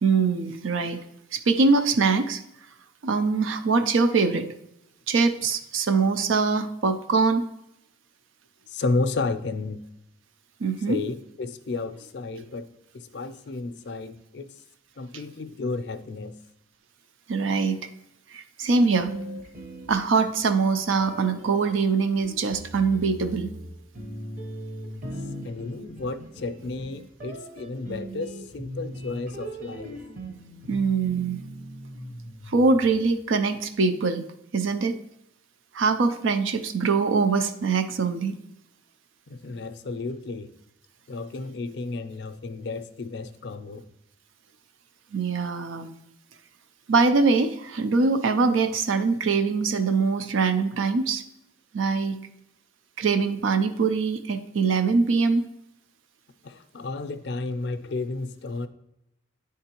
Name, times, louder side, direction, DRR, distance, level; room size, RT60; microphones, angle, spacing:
voice 1, 0.0-1.0 1.3-2.4 3.0-4.5 5.1-7.4 10.6-11.0 17.3-17.8 18.3-19.1 19.9-23.5 30.7-31.4 32.5-34.2 34.5-34.9 35.7-38.4 45.1-45.9 46.9-51.2 51.7-52.2 53.0-55.4, right 4 dB, 90° right, 10 dB, 0.5 m, -23 dB
voice 2, 8.7-9.8 10.9-12.7 12.9-14.5 15.0-16.3 25.4-30.0 39.3-40.5 41.1-43.9 56.4-58.7, left 3 dB, 60° left, 10 dB, 0.4 m, -32 dB
sound 1, 19.0-20.5 21.0-33.2, right 1 dB, 40° right, 0.9 m, -40 dB
9.7 x 3.6 x 2.9 m, 0.84 s
head